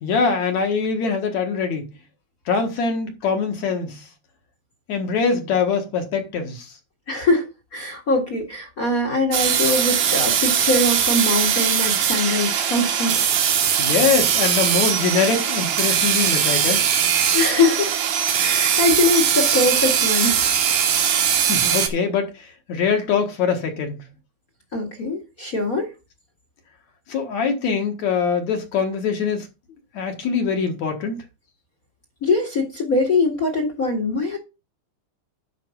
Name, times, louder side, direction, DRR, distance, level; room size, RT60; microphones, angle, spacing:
voice 1, 0.0-1.9 2.5-4.0 4.9-6.7 13.8-16.9 21.4-24.0 27.1-29.5 29.9-31.2, left 5 dB, 60° left, 2.6 m, -23 dB
voice 2, 7.1-7.5 7.7-13.3 17.3-18.0 18.4-20.4 24.7-25.9 32.2-34.4, left 2 dB, 35° left, 1.6 m, -22 dB
sound 1, 9.3-21.9, right 8 dB, 65° right, 2.5 m, -20 dB
10.5 x 5.2 x 5.3 m
omnidirectional pair, 4.1 m